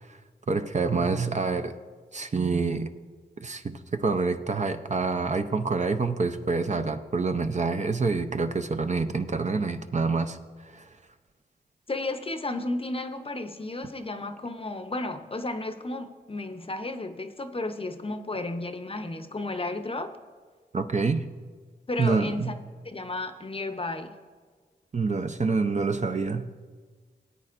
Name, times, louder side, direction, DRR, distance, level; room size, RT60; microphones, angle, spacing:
voice 1, 0.5-1.7 2.1-2.9 3.4-10.4 10.6-10.9 20.7-21.3 22.0-22.5 24.9-26.5, right 4 dB, 40° right, 8 dB, 0.6 m, -27 dB
voice 2, 11.9-20.2 21.9-24.2, left 2 dB, 30° left, 8 dB, 0.7 m, -33 dB
18.0 x 8.8 x 2.5 m, 1.5 s
cardioid pair, 65°, 19 cm